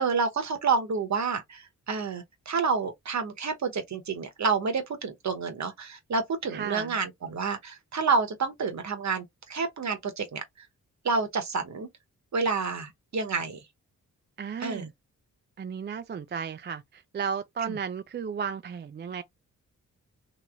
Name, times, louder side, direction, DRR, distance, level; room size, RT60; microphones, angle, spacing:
voice 1, 0.0-10.4 11.0-11.9 12.3-13.6 14.6-14.9 17.7-17.8, right 4 dB, 55° right, 1.0 m, -29 dB
voice 2, 6.5-6.9 14.4-14.9 15.6-19.2, right 6 dB, 30° right, 0.4 m, -34 dB
3.0 x 2.9 x 2.4 m
cardioid pair, 55°, 34 cm